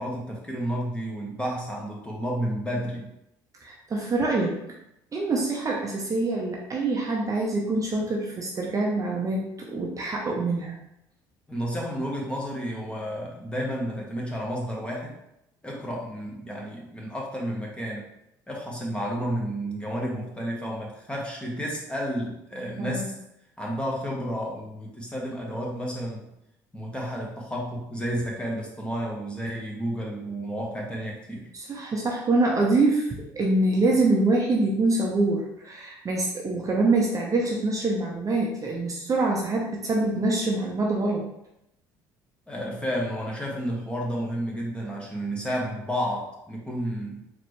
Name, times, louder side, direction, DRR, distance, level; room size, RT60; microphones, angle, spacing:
voice 1, 0.0-3.1 11.5-15.1 15.6-18.0 18.5-23.1 23.6-26.3 26.7-31.4 42.5-47.2, equal, 10° left, -2 dB, 1.4 m, -31 dB
voice 2, 3.6-4.6 5.1-10.7 22.8-23.0 31.5-41.3, right 2 dB, 35° right, -2 dB, 0.8 m, -25 dB
4.1 x 3.1 x 3.1 m, 0.82 s
hypercardioid pair, 70°, 10 cm